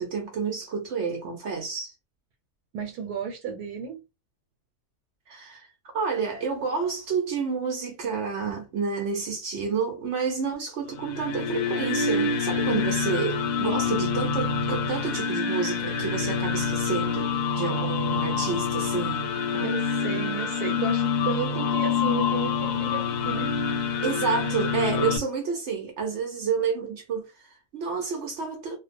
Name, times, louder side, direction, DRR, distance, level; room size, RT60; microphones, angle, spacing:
voice 1, 0.0-1.9 5.3-20.1 24.0-28.8, right 5 dB, 65° right, 0.7 m, -30 dB
voice 2, 2.7-4.0 19.6-23.5, right 6 dB, 85° right, 1.1 m, -33 dB
sound 1, 10.9-25.2, left 5 dB, 85° left, 1.1 m, -26 dB
2.5 x 2.1 x 2.5 m
omnidirectional pair, 1.6 m